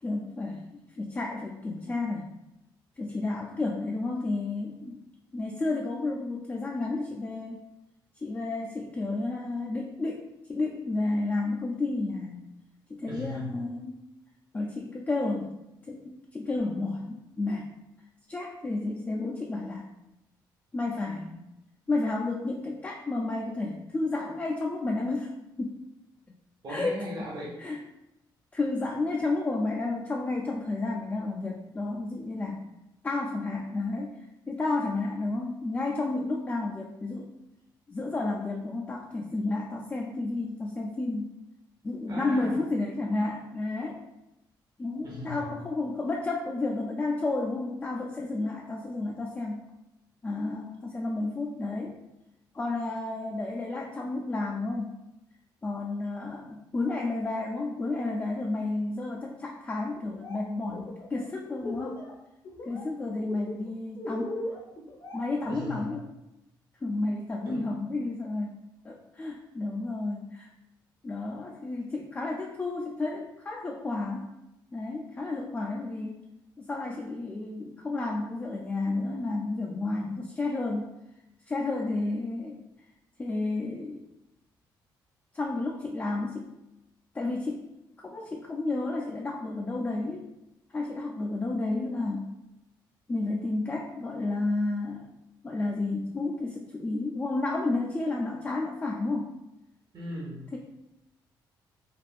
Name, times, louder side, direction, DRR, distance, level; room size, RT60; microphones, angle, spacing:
voice 1, 0.0-2.3 3.0-5.0 5.3-7.7 8.2-10.2 10.5-12.5 12.9-14.0 14.5-15.6 15.9-17.7 18.3-19.9 20.7-21.4 21.9-25.3 25.6-25.8 26.7-26.9 27.6-27.8 28.5-32.7 33.0-34.2 34.5-37.3 37.9-41.3 41.8-44.0 44.8-49.7 50.2-52.0 52.5-55.0 55.6-62.1 62.7-64.4 65.1-66.1 66.8-70.5 71.0-74.3 74.7-76.2 76.6-80.9 81.5-82.6 83.2-84.1 85.3-86.5 87.1-87.7 88.0-90.3 90.7-92.4 93.1-95.1 95.4-99.3 100.5-100.6, left 2 dB, 20° left, -1 dB, 0.3 m, -31 dB
voice 2, 13.1-13.5 26.6-27.5 42.1-42.6 45.0-45.6 65.5-65.9 67.4-67.7 99.9-100.4, left 1 dB, 50° right, -5 dB, 0.9 m, -37 dB
Laughter, 60.0-60.4 60.7-62.1 62.4-62.8 63.1-66.0, left 1 dB, 55° left, 0.7 m, -38 dB
3.4 x 2.4 x 2.3 m, 0.90 s
cardioid pair, 80°, 9 cm